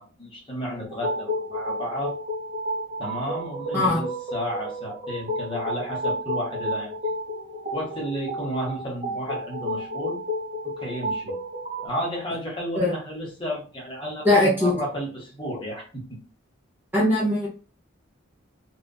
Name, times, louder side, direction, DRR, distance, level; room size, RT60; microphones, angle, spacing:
voice 1, 0.0-2.1 3.0-6.9 7.7-10.2 10.6-11.3 11.8-16.2, equal, 25° left, -2 dB, 0.9 m, -32 dB
sound 1, 0.9-11.9, equal, 35° right, 1.1 m, -31 dB
voice 2, 14.2-14.8 16.9-17.5, left 1 dB, 10° right, -5 dB, 0.6 m, -20 dB
2.6 x 2.3 x 2.2 m, 0.36 s
head